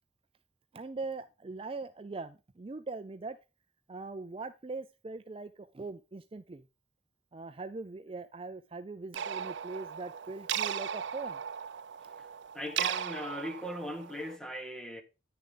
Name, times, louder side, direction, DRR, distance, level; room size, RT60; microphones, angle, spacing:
voice 1, 0.7-3.4 3.9-6.6 7.3-11.4, right 3 dB, 30° right, 0.4 m, -41 dB
sound 1, 9.2-14.4, right 9 dB, 85° right, 0.5 m, -37 dB
voice 2, 12.5-15.0, equal, 5° left, 1.4 m, -39 dB
9.8 x 6.8 x 3.8 m
head